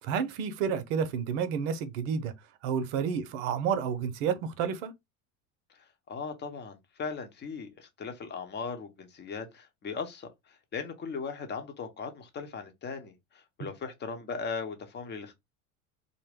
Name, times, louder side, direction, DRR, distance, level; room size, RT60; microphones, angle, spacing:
voice 1, 0.0-2.3 2.6-4.9, right 7 dB, 70° right, 0.7 m, -30 dB
voice 2, 5.7-15.3, left 5 dB, 25° left, 0.8 m, -38 dB
2.5 x 2.2 x 3.3 m
hypercardioid pair, 95°, 40 cm